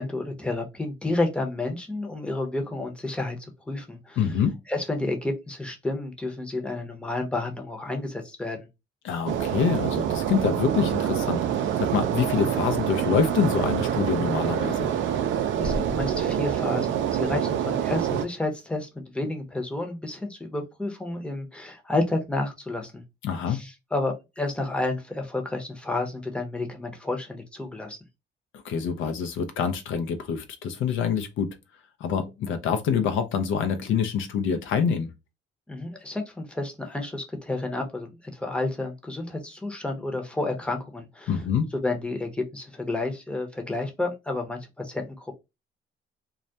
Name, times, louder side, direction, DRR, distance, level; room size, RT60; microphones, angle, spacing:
voice 1, 0.0-4.4 4.7-8.7 15.6-23.0 23.5-28.0 35.7-41.4 41.7-45.3, left 2 dB, 5° left, 0.6 m, -30 dB
voice 2, 4.2-4.6 9.0-14.9 23.2-23.6 28.6-31.6 32.0-35.1 41.3-41.7, left 6 dB, 80° left, 0.5 m, -26 dB
sound 1, 9.3-18.3, right 9 dB, 70° right, 0.4 m, -26 dB
2.3 x 2.1 x 2.6 m
cardioid pair, 90°, 20 cm